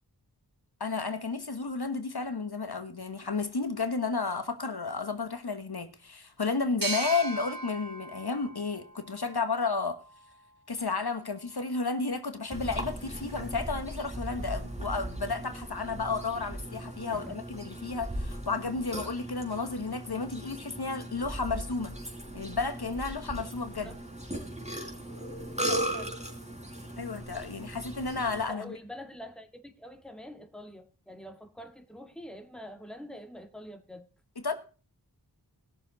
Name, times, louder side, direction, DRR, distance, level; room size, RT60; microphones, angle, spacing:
voice 1, 0.8-10.0 10.7-21.9 22.3-24.0 27.0-28.7 34.4-34.5, left 4 dB, 70° left, 1.3 m, -32 dB
sound 1, 6.8-10.2, right 3 dB, 55° right, 1.8 m, -38 dB
Burping eructation, 12.5-28.4, right 1 dB, 15° right, 4.3 m, -38 dB
voice 2, 25.5-26.2 26.7-27.1 28.5-34.1, left 1 dB, ahead, 1.8 m, -45 dB
19.0 x 6.9 x 4.0 m
wide cardioid pair, 40°, 41 cm